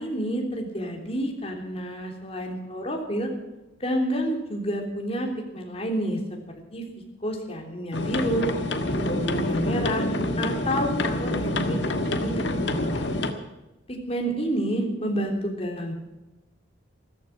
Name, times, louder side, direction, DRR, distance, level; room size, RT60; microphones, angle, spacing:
voice 1, 0.0-3.3 3.8-6.2 6.7-6.8 7.2-8.5 9.1-10.0 10.4-13.1 13.9-15.9, equal, 30° left, 2 dB, 3.3 m, -29 dB
sound 1, 7.9-13.3, left 1 dB, 60° left, 1.6 m, -27 dB
15.5 x 14.5 x 5.9 m, 1.0 s
head